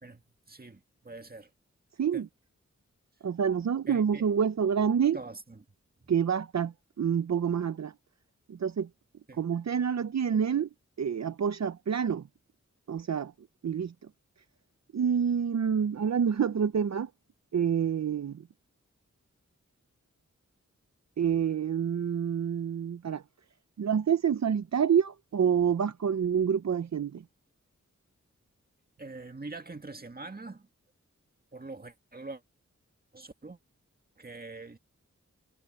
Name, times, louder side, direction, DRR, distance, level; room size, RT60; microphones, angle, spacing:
voice 1, 0.0-1.5 2.1-2.2 3.9-4.3 5.1-5.7 6.0-6.1 9.3-9.4 29.0-30.7 31.5-32.4 33.1-33.6 34.2-34.8, right 3 dB, 30° right, 1.9 m, -44 dB
voice 2, 3.2-5.2 6.1-7.9 8.5-8.9 9.4-10.7 11.0-12.3 12.9-13.3 13.6-13.9 14.9-17.1 17.5-18.4 21.2-23.2 23.8-27.2, right 7 dB, 65° right, 0.7 m, -27 dB
wide cardioid pair, 90°, 29 cm